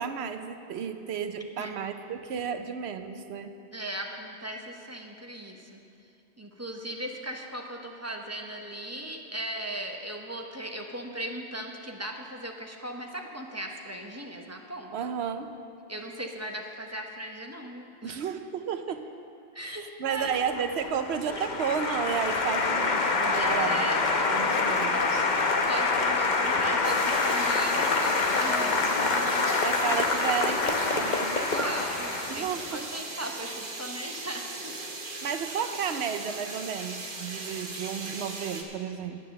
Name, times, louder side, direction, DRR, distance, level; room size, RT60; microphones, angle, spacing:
voice 1, 0.0-3.5 14.9-15.6 18.0-19.1 19.6-23.8 24.3-25.3 28.5-28.8 29.6-31.8 32.3-32.8 35.2-39.2, right 7 dB, 90° right, 8 dB, 0.9 m, -33 dB
voice 2, 3.7-5.8 6.4-14.9 15.9-18.2 19.5-20.4 23.3-24.1 25.7-30.0 31.5-34.9, right 1 dB, 15° right, 1 dB, 0.8 m, -38 dB
Applause, 20.2-32.7, left 3 dB, 50° left, 0.9 m, -26 dB
sound 1, 26.8-38.6, right 3 dB, 55° right, 1.2 m, -38 dB
9.9 x 9.2 x 6.6 m, 2.5 s
omnidirectional pair, 1.1 m